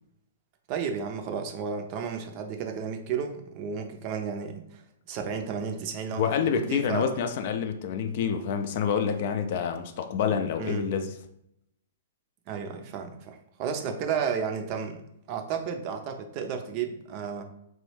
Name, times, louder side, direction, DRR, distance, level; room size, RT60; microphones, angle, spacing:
voice 1, 0.7-4.8 5.1-7.1 10.6-10.8 12.5-15.0 15.3-17.4, right 6 dB, 40° right, 5 dB, 0.5 m, -32 dB
voice 2, 6.2-11.1, left 7 dB, 55° left, 6 dB, 0.4 m, -27 dB
3.0 x 2.2 x 3.2 m, 0.79 s
hypercardioid pair, 130°, 0 cm